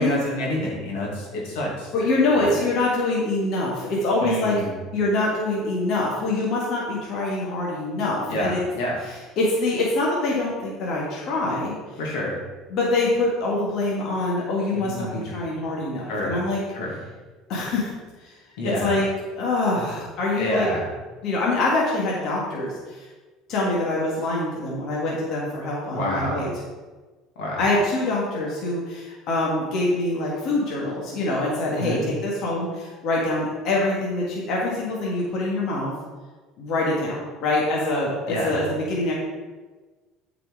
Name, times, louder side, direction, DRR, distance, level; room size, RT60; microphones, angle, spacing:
voice 1, 0.0-1.9 2.4-2.6 4.2-4.8 8.3-9.0 12.0-12.3 14.7-15.3 16.1-16.3 16.7-16.9 18.6-18.9 20.4-20.9 25.9-26.5 27.4-27.7 31.8-32.1 38.3-38.6, left 1 dB, 85° left, -3 dB, 2.5 m, -28 dB
voice 2, 1.9-4.5 4.9-8.6 9.4-11.7 12.7-16.6 17.5-17.9 18.2-18.4 18.8-19.1 19.4-20.7 21.2-23.1 23.5-26.5 27.6-35.9 36.6-39.1, left 2 dB, 60° left, -5 dB, 1.9 m, -24 dB
8.6 x 5.0 x 4.9 m, 1.3 s
supercardioid pair, 110°, 0 cm